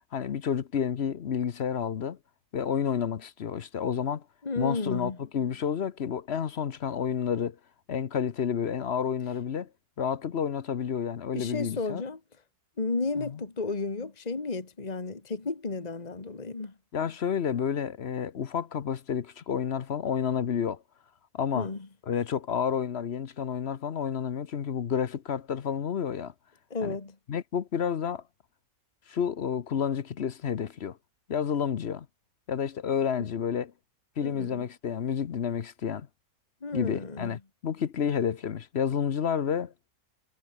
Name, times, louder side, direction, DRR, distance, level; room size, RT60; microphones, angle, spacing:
voice 1, 0.1-2.2 2.5-4.2 4.6-7.6 7.9-9.7 10.0-12.0 13.2-13.4 16.9-20.8 21.3-21.7 22.1-26.3 26.8-27.0 27.3-28.2 29.1-31.0 31.3-32.1 32.5-33.7 34.2-36.1 36.7-39.7, left 8 dB, 50° left, 1.0 m, -30 dB
voice 2, 4.4-5.2 11.3-12.2 12.8-16.7 21.5-21.9 26.7-27.2 34.2-34.6 36.6-37.4, left 3 dB, 25° left, 1.9 m, -33 dB
omnidirectional pair, 1.7 m